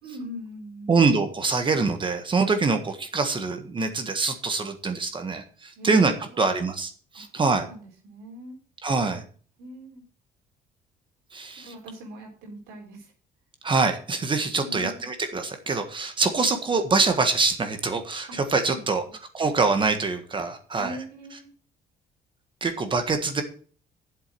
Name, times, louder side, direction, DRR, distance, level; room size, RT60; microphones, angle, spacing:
voice 1, 0.0-1.0 5.8-6.0 6.3-6.5 7.1-7.3 7.7-8.6 9.6-10.0 11.6-13.1 14.5-15.1 18.3-18.4 18.7-19.1 20.8-21.5, equal, 85° right, 0 dB, 4.2 m, -41 dB
voice 2, 0.9-6.1 6.4-7.7 8.8-9.2 11.3-11.7 13.6-19.0 19.3-21.0 22.6-23.4, right 4 dB, 30° right, 7 dB, 1.6 m, -24 dB
8.2 x 7.5 x 7.7 m, 0.42 s
cardioid pair, 110°, 17 cm